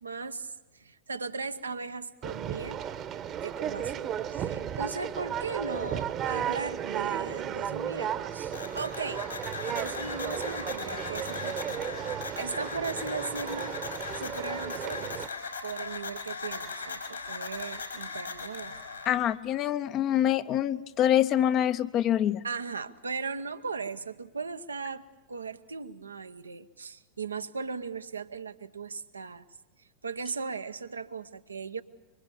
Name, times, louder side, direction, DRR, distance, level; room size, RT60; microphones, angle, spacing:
voice 1, 0.0-2.8 3.4-9.2 9.7-11.9 12.4-13.8 14.1-15.3 15.6-19.1 22.4-29.4 30.0-31.8, right 4 dB, 75° right, 10 dB, 0.9 m, -38 dB
Conversation, 2.2-15.3, right 9 dB, 30° right, 1.1 m, -34 dB
sound 1, 8.5-19.1, left 4 dB, 75° left, 4.9 m, -38 dB
voice 2, 19.1-22.4, left 11 dB, 35° left, 12 dB, 0.7 m, -25 dB
25.0 x 23.5 x 7.1 m, 1.1 s
figure-of-eight pair, 90°, 0 cm